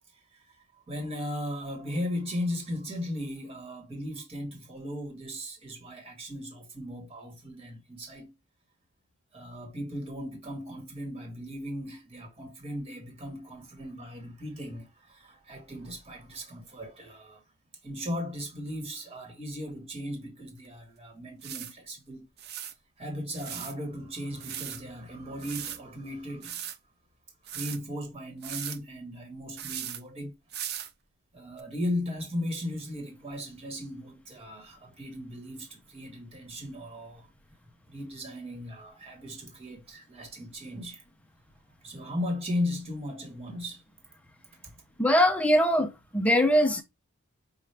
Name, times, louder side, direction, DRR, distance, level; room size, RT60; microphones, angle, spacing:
voice 1, 0.1-8.3 9.3-17.4 17.8-22.2 22.5-22.6 23.0-26.7 27.5-30.4 31.3-37.3 37.9-41.0 41.8-43.8 44.6-44.7, left 1 dB, 25° right, 1.4 m, -37 dB
sound 1, 20.6-20.7 21.4-21.7 22.4-22.7 23.3-23.7 24.4-24.8 25.4-25.8 26.4-26.8 27.5-27.8 28.4-28.8 29.6-30.0 30.5-30.9 31.6-31.7, right 10 dB, 50° right, 0.5 m, -37 dB
voice 2, 45.0-46.8, equal, 5° left, 0.7 m, -22 dB
5.5 x 2.5 x 3.3 m
head